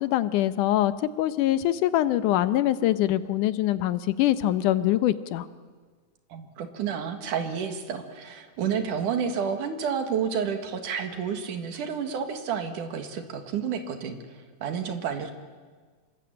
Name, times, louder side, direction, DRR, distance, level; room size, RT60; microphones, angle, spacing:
voice 1, 0.0-0.9 1.2-5.5, left 13 dB, 85° left, 13 dB, 2.4 m, -24 dB
voice 2, 6.3-15.3, right 7 dB, 90° right, 6 dB, 3.3 m, -30 dB
26.5 x 23.0 x 8.8 m, 1.5 s
omnidirectional pair, 3.5 m